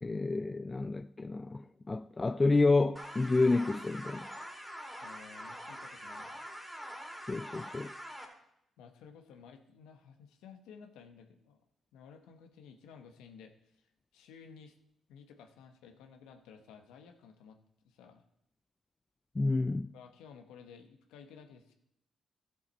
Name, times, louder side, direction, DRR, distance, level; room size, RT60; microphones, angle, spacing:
voice 1, 0.0-4.3 7.3-7.9 19.4-19.9, left 3 dB, 30° left, 0.3 m, -29 dB
sound 1, 3.0-8.3, equal, 10° right, 2.5 m, -45 dB
voice 2, 5.0-6.5 8.8-11.6 11.9-13.9 14.1-14.7 15.1-17.6 17.8-18.2 19.9-21.7, left 6 dB, 85° left, 1.0 m, -54 dB
13.0 x 7.2 x 4.3 m
supercardioid pair, 60°, 0 cm